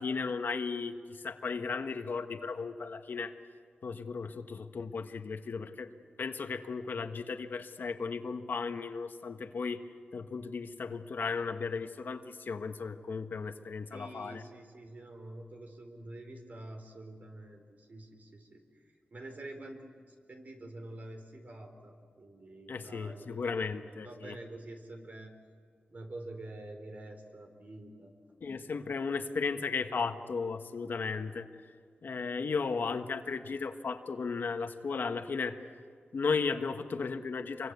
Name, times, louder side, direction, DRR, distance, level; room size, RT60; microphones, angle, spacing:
voice 1, 0.0-3.4 3.8-5.9 6.2-9.8 10.1-14.4 22.7-24.4 28.4-31.5 32.0-35.6 36.1-37.7, left 4 dB, 70° left, 7 dB, 1.4 m, -35 dB
voice 2, 13.9-25.3 25.9-28.1 28.9-29.0, right 1 dB, 50° right, 4 dB, 4.2 m, -47 dB
27.0 x 24.0 x 8.2 m, 2.1 s
wide cardioid pair, 120°, 3 cm